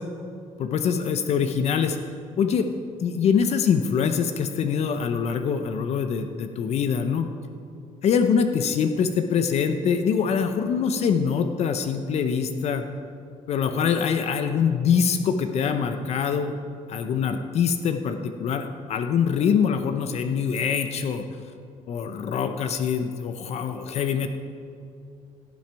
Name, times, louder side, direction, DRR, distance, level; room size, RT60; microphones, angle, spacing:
voice 1, 0.6-2.0 2.4-2.7 3.0-7.3 8.0-12.9 13.5-16.5 16.9-21.2 21.9-24.3, left 6 dB, 55° left, 8 dB, 0.7 m, -24 dB
16.5 x 7.5 x 4.6 m, 2.5 s
cardioid pair, 130°, 13 cm